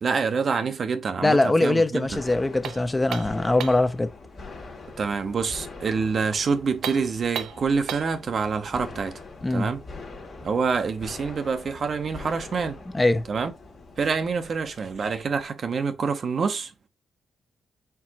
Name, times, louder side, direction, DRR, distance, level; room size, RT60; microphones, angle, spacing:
voice 1, 0.0-2.2 5.0-9.2 9.5-9.8 10.4-12.8 13.3-13.5 14.0-16.7, right 5 dB, 55° right, 0.7 m, -26 dB
voice 2, 1.2-4.1 9.4-9.7 12.9-13.2, left 2 dB, 20° left, 0.6 m, -22 dB
sound 1, 2.0-15.5, left 3 dB, 60° left, 1.4 m, -43 dB
sound 2, 2.6-3.9 6.7-8.2, right 9 dB, 85° right, 0.3 m, -34 dB
4.6 x 3.7 x 2.8 m
cardioid pair, 70°, 0 cm